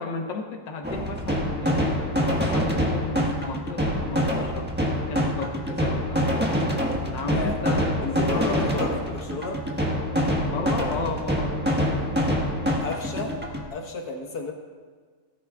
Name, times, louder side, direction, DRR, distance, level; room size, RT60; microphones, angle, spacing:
voice 1, 0.0-4.7 5.1-6.5 7.1-8.7 10.4-12.1, left 3 dB, 85° left, 2 dB, 1.8 m, -34 dB
sound 1, 0.8-13.6, equal, 5° right, 1.2 m, -25 dB
voice 2, 7.3-9.6 12.8-13.4 13.7-14.5, left 3 dB, 60° left, 1 dB, 2.0 m, -33 dB
18.0 x 14.0 x 2.4 m, 1.5 s
omnidirectional pair, 1.9 m